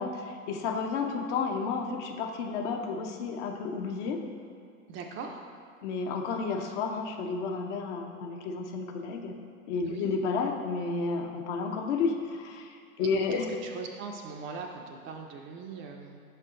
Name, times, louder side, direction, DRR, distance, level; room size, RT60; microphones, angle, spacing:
voice 1, 0.0-4.2 5.8-9.4 9.7-13.5, left 4 dB, 55° left, 4 dB, 0.8 m, -31 dB
voice 2, 4.9-5.5 9.9-10.1 13.0-16.2, right 5 dB, 30° right, 2 dB, 0.4 m, -40 dB
6.1 x 4.5 x 3.7 m, 2.4 s
hypercardioid pair, 90°, 43 cm